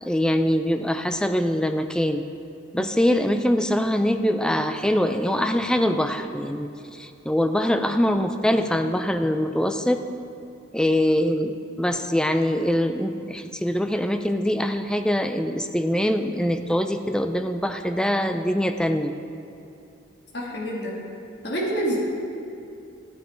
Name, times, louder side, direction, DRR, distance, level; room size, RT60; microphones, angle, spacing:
voice 1, 0.0-2.2 2.7-10.0 10.7-19.1, equal, 5° left, 7 dB, 0.4 m, -23 dB
voice 2, 20.3-20.9 21.4-22.0, right 1 dB, 55° left, -4 dB, 1.8 m, -27 dB
13.5 x 9.1 x 4.4 m, 2.7 s
head